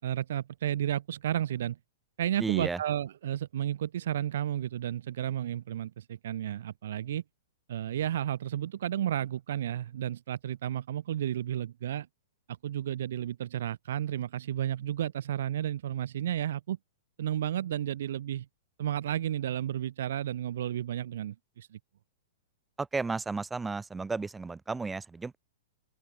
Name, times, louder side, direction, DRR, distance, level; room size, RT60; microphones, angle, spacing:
voice 1, 0.0-1.8 2.2-7.2 7.7-12.1 12.6-16.8 17.2-18.5 18.8-21.8, right 11 dB, 70° right, 5.9 m, -32 dB
voice 2, 2.4-2.8 22.8-25.4, right 4 dB, 10° right, 2.2 m, -33 dB
open air
hypercardioid pair, 120°, 0 cm